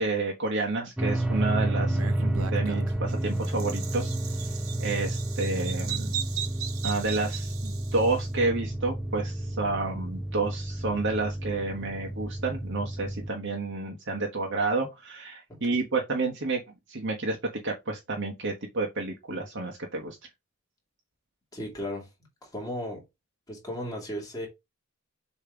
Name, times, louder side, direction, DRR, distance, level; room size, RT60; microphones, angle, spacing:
voice 1, 0.0-4.1 4.8-6.1 6.8-16.6 16.9-17.4 17.6-20.2, right 3 dB, 55° right, 1.2 m, -30 dB
sound 1, 1.0-13.3, right 1 dB, 5° right, 0.7 m, -30 dB
Bird vocalization bird call bird song, 1.9-8.2, right 9 dB, 70° right, 0.9 m, -38 dB
voice 2, 21.5-22.1 22.4-23.0 23.5-24.5, equal, 15° left, 2.6 m, -35 dB
6.9 x 3.2 x 5.0 m
head